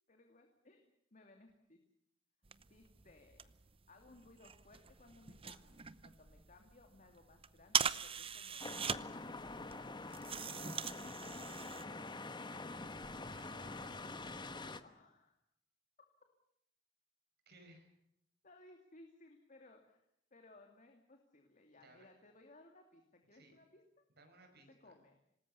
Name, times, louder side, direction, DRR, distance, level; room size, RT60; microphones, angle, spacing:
voice 1, 0.1-1.8 2.7-3.5 3.9-8.8 9.2-9.9 13.9-14.4 14.8-15.4 18.4-20.0 20.3-23.8 24.7-25.2, left 2 dB, 40° left, 4 dB, 2.6 m, -62 dB
sound 1, 2.4-11.8, right 7 dB, 30° right, 0.8 m, -42 dB
sound 2, 8.6-14.8, left 2 dB, 25° left, 1.2 m, -46 dB
voice 2, 10.6-12.1 13.3-14.0 17.5-17.9 21.8-22.1 23.3-23.6 24.2-24.9, right 2 dB, 60° right, 4 dB, 6.0 m, -63 dB
27.0 x 19.5 x 7.0 m, 0.75 s
head